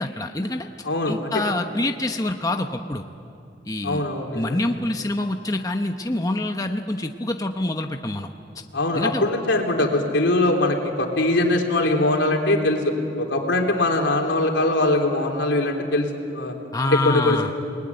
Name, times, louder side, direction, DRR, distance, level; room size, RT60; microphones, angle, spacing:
voice 1, 0.0-0.7 1.0-3.0 3.6-4.1 4.3-8.3 8.9-9.3 16.7-17.5, left 2 dB, 20° left, 5 dB, 0.9 m, -26 dB
voice 2, 0.8-1.3 3.8-4.6 8.7-16.5 16.9-17.5, left 2 dB, 85° left, 2 dB, 3.6 m, -22 dB
29.0 x 20.0 x 9.6 m, 2.6 s
head